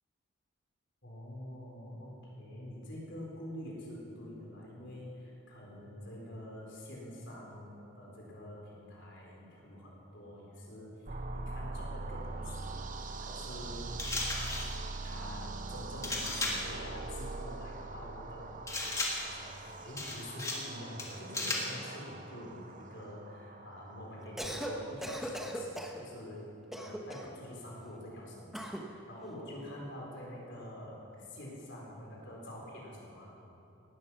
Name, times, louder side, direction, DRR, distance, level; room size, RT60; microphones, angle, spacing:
voice 1, 1.0-12.8 13.2-13.9 14.2-14.7 15.0-26.4 26.7-33.3, left 1 dB, 55° left, -3 dB, 4.1 m, -46 dB
sound 1, 11.1-24.9, right 3 dB, 35° right, 0.7 m, -43 dB
sound 2, 14.0-14.8 16.0-16.7 18.7-19.4 20.0-20.7 21.0-21.8, left 2 dB, 15° left, 1.6 m, -35 dB
Cough, 24.2-24.7 25.0-26.0 26.7-27.4 28.5-28.9, equal, ahead, 1.0 m, -38 dB
18.0 x 12.5 x 5.8 m, 3.0 s
head